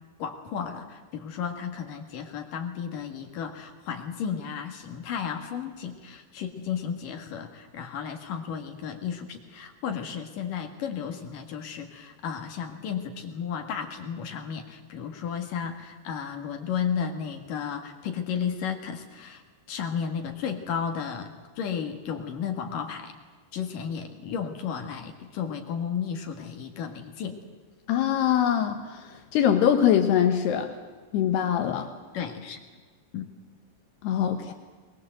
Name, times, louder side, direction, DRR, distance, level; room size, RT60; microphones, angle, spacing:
voice 1, 0.2-19.4 19.7-21.3 21.6-23.1 23.5-27.4 32.1-32.6 33.1-33.3, left 7 dB, 60° left, 5 dB, 3.1 m, -33 dB
voice 2, 27.9-29.0 29.3-30.7 31.1-31.9 34.0-34.5, left 9 dB, 75° left, 6 dB, 3.2 m, -23 dB
22.0 x 21.5 x 7.8 m, 1.4 s
omnidirectional pair, 4.8 m